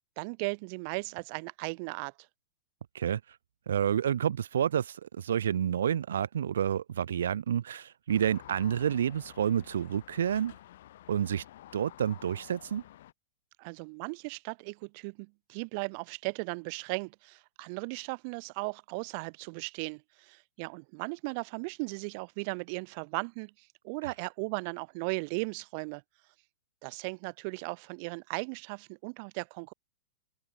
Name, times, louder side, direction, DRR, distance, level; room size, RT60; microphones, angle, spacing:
voice 1, 0.2-2.1 13.6-26.0 26.8-29.7, right 34 dB, 35° right, 3.0 m, -37 dB
voice 2, 3.7-10.5 11.1-11.4 11.7-12.8 24.0-24.1, right 9 dB, 90° right, 1.1 m, -29 dB
sound 1, 8.1-13.1, left 13 dB, 55° left, 7.2 m, -51 dB
supercardioid pair, 170°, 0 cm